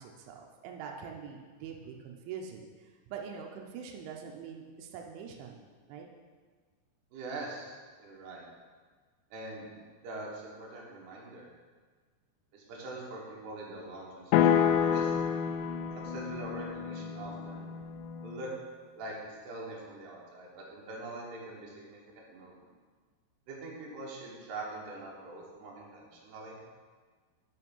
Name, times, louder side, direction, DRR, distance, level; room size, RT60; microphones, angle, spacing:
voice 1, 0.0-6.1, right 6 dB, 80° right, 1 dB, 3.0 m, -44 dB
voice 2, 7.1-7.7 8.0-8.4 9.3-11.5 12.5-15.1 16.0-17.7 18.2-18.5 19.0-22.7 23.5-26.6, right 2 dB, 65° right, -3 dB, 3.2 m, -43 dB
sound 1, 14.3-18.4, left 8 dB, 90° left, 2.6 m, -29 dB
8.5 x 5.6 x 5.4 m, 1.5 s
omnidirectional pair, 5.7 m